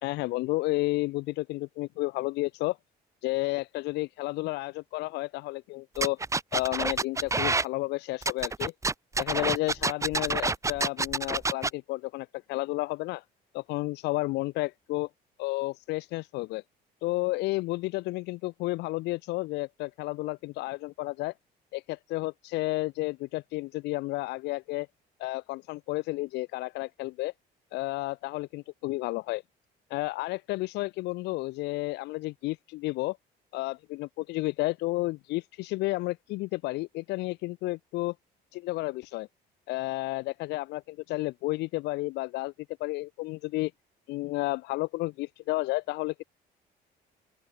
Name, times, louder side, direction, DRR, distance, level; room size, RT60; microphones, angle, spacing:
voice 1, 0.0-2.8 3.2-6.2 6.5-8.7 9.2-13.2 13.5-15.1 15.4-16.6 17.0-21.3 21.7-24.9 25.2-27.3 27.7-29.4 29.9-33.2 33.5-38.1 38.5-39.3 39.7-42.5 42.8-43.7 44.1-46.1, left 20 dB, 90° left, 2.7 m, -31 dB
sound 1, 6.0-7.6 8.2-11.7, right 3 dB, 15° right, 2.1 m, -28 dB
open air
cardioid pair, 110°, 17 cm